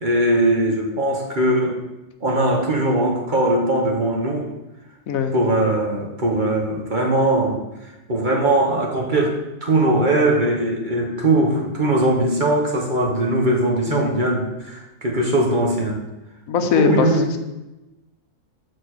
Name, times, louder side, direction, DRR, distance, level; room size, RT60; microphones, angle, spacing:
voice 1, 0.0-1.8 2.2-4.4 5.3-9.3 9.6-16.0 16.7-17.3, right 1 dB, 35° right, 0 dB, 1.3 m, -20 dB
voice 2, 13.9-14.2 16.5-17.1, left 6 dB, 75° left, 7 dB, 1.1 m, -20 dB
6.7 x 4.4 x 6.5 m, 1.0 s
omnidirectional pair, 1.5 m